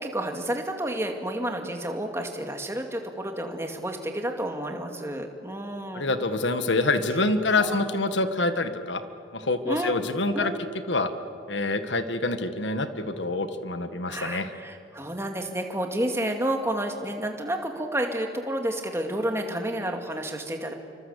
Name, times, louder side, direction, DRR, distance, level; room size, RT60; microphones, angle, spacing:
voice 1, 0.0-6.1 7.6-8.0 9.6-10.0 10.3-10.6 14.1-20.7, right 1 dB, 15° right, 4 dB, 2.2 m, -30 dB
voice 2, 5.9-9.0 9.3-10.5 10.9-11.1 11.5-14.5, left 2 dB, 70° left, 9 dB, 1.6 m, -26 dB
28.0 x 25.0 x 8.2 m, 2.6 s
head